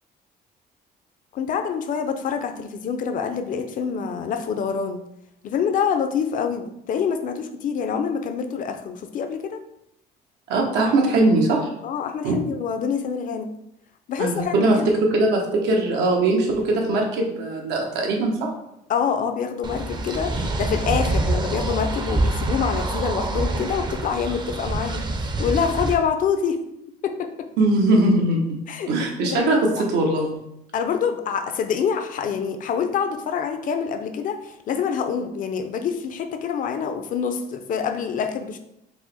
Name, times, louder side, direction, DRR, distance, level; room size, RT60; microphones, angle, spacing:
voice 1, 1.3-5.0 5.4-9.6 11.8-13.5 14.1-14.9 18.9-26.6 27.0-27.5 28.7-29.9 30.7-38.6, left 7 dB, 50° left, 7 dB, 0.5 m, -26 dB
voice 2, 10.5-11.7 12.2-12.4 14.2-18.5 27.6-28.6 28.9-30.4, right 2 dB, 85° right, 0 dB, 1.0 m, -21 dB
sound 1, 19.6-25.9, right 2 dB, 25° right, 0.5 m, -26 dB
4.8 x 2.1 x 4.1 m, 0.81 s
cardioid pair, 110°, 17 cm